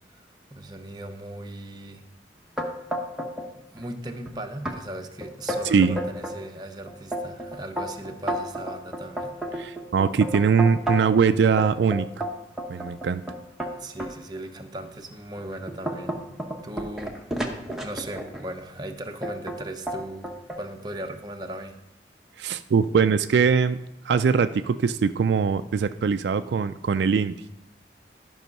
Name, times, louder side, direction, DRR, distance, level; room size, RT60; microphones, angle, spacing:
voice 1, 0.1-2.1 3.5-9.4 13.8-16.2 16.6-17.4 17.8-21.8, right 1 dB, 25° right, 4 dB, 0.7 m, -38 dB
sound 1, 2.6-3.5 3.8-4.3 4.7-4.8 5.2-6.4 6.9-11.2 11.6-14.1 14.7-14.9 15.4-18.4 19.2-19.6 19.9-20.6, equal, ahead, 0.9 m, -31 dB
voice 2, 5.6-6.0 9.6-12.1 12.7-13.2 22.4-23.8 24.0-27.3, right 6 dB, 70° right, 10 dB, 0.3 m, -22 dB
12.0 x 5.5 x 5.3 m, 0.84 s
head